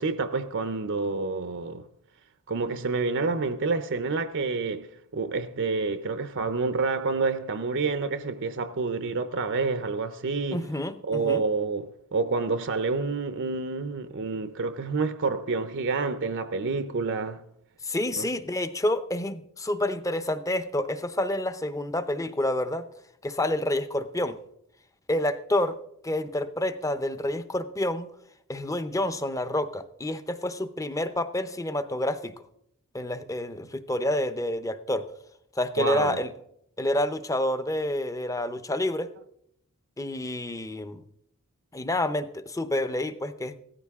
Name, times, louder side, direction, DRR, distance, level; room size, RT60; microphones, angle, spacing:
voice 1, 0.0-1.9 2.5-10.6 11.1-17.4 18.2-18.3 35.8-36.2, right 4 dB, 55° right, 0.7 m, -28 dB
voice 2, 10.5-11.4 17.8-22.9 23.2-24.4 25.1-25.8 26.0-28.1 28.5-32.3 32.9-35.1 35.6-36.3 36.8-39.1 40.0-41.0 41.7-43.6, left 1 dB, 15° left, 0.7 m, -28 dB
16.5 x 14.0 x 3.6 m
head